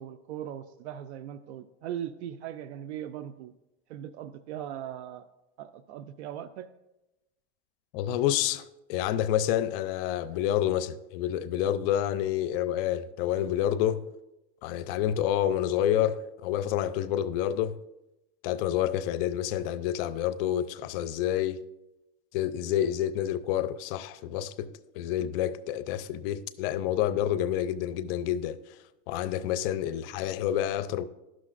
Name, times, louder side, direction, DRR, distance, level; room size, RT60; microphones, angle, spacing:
voice 1, 0.0-3.5 3.9-5.3 5.6-6.7, right 10 dB, 85° right, 0.5 m, -39 dB
voice 2, 7.9-14.0 14.6-17.8 18.4-21.6 22.3-28.8 29.1-31.1, left 11 dB, 60° left, 0.5 m, -28 dB
11.5 x 6.2 x 2.5 m
supercardioid pair, 120°, 32 cm